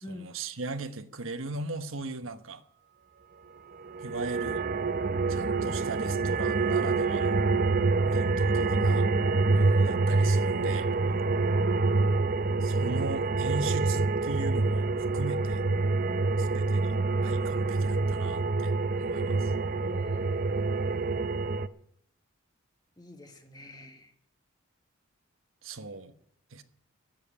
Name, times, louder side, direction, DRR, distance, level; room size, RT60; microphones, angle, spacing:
voice 1, 0.1-2.6 4.0-4.6 5.3-7.4 8.1-9.1 9.5-10.9 12.6-14.9 15.1-15.6 16.4-16.9 17.2-18.7 19.0-19.5 25.6-26.1 26.5-26.6, right 3 dB, 75° right, 8 dB, 1.2 m, -37 dB
sound 1, 3.8-21.7, right 3 dB, 45° right, 0.6 m, -26 dB
voice 2, 7.7-8.2 11.3-12.2 16.0-16.6 19.8-21.2 23.0-24.1, left 2 dB, 20° left, 6 dB, 1.4 m, -48 dB
16.0 x 7.6 x 9.9 m, 0.70 s
head